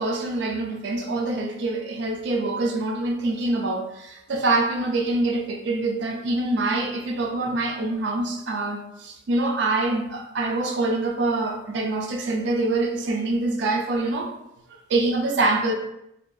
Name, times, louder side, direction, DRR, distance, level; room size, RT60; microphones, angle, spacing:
voice 1, 0.0-14.3 14.7-15.7, right 2 dB, 60° right, 2 dB, 0.4 m, -25 dB
2.6 x 2.3 x 2.3 m, 0.83 s
head